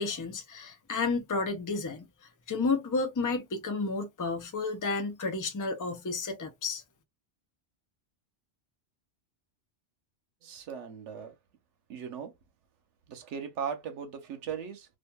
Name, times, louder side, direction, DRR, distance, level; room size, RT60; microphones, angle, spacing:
voice 1, 0.0-2.1 2.5-6.8, left 3 dB, 25° left, 0.4 m, -31 dB
voice 2, 10.4-11.3 11.9-12.3 13.1-15.0, right 7 dB, 85° right, 1.0 m, -38 dB
2.7 x 2.4 x 2.2 m
omnidirectional pair, 1.2 m